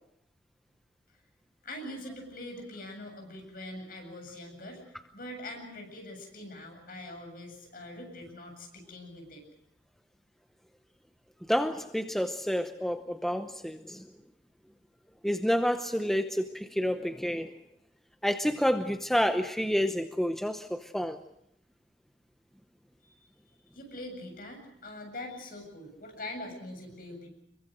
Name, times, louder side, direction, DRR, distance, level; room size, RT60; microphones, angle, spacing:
voice 1, 1.6-4.8 5.1-9.4 23.0-27.3, left 1 dB, 55° left, 3 dB, 7.8 m, -43 dB
voice 2, 11.5-14.0 15.2-17.5 18.2-21.2, equal, ahead, 7 dB, 0.8 m, -29 dB
25.5 x 23.0 x 6.4 m, 0.75 s
head